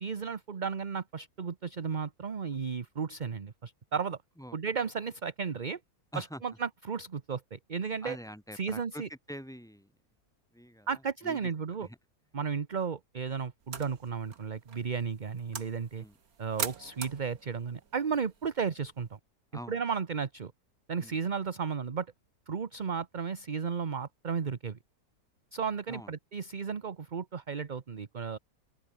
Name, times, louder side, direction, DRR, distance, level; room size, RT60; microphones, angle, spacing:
voice 1, 0.0-4.2 4.5-5.8 6.1-8.2 8.5-9.1 10.9-11.9 12.3-16.0 16.4-19.2 19.7-20.5 20.9-22.1 22.5-24.8 25.5-28.4, right 6 dB, 35° right, 0.9 m, -34 dB
voice 2, 8.0-9.9 10.5-11.5 11.8-12.0 16.0-16.2 19.5-19.8 21.0-21.2 25.9-26.1, equal, ahead, 7.4 m, -45 dB
sound 1, 13.6-19.2, right 6 dB, 65° right, 2.2 m, -43 dB
open air
omnidirectional pair, 1.6 m